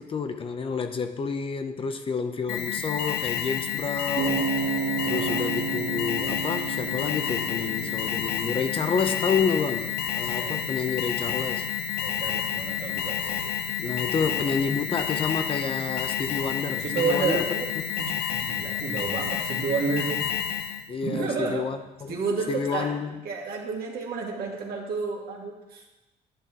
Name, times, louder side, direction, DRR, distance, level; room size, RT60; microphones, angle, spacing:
voice 1, 0.0-4.5 5.0-11.7 13.8-17.5 20.9-22.2 22.5-23.2, left 5 dB, 30° left, 8 dB, 0.7 m, -29 dB
Alarm, 2.5-20.9, left 9 dB, 70° left, 0.8 m, -30 dB
sound 1, 4.2-22.4, right 6 dB, 90° right, 1.3 m, -37 dB
voice 2, 5.0-5.4 10.4-10.6 12.0-13.5 14.2-14.5 16.8-17.7 18.0-20.3 21.0-21.7 22.1-22.9 23.2-25.8, right 4 dB, 60° right, -1 dB, 2.2 m, -31 dB
11.5 x 10.0 x 3.0 m, 1.0 s
cardioid pair, 110°, 17 cm